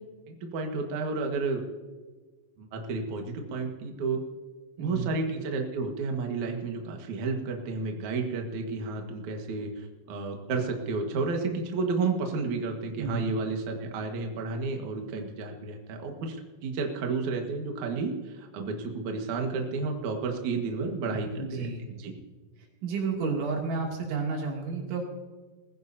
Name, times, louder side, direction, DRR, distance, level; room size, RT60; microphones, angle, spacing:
voice 1, 0.3-1.6 2.6-4.2 4.8-16.4 16.6-22.1, right 4 dB, 55° right, 2 dB, 2.4 m, -31 dB
voice 2, 4.8-5.1 13.0-13.2 21.1-21.8 22.8-25.0, right 4 dB, 90° right, 0 dB, 5.1 m, -31 dB
22.0 x 15.5 x 2.8 m, 1.3 s
omnidirectional pair, 5.2 m